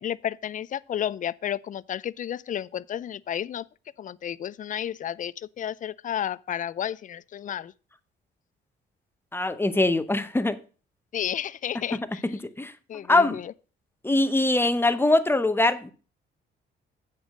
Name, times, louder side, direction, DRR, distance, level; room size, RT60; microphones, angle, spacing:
voice 1, 0.0-3.7 4.0-7.7 11.1-12.2 12.9-13.5, left 10 dB, 40° left, 0.4 m, -32 dB
voice 2, 9.3-10.6 12.6-12.7 13.1-13.4 14.0-15.9, left 2 dB, 10° left, 0.8 m, -22 dB
8.2 x 5.1 x 6.2 m
cardioid pair, 90°, 20 cm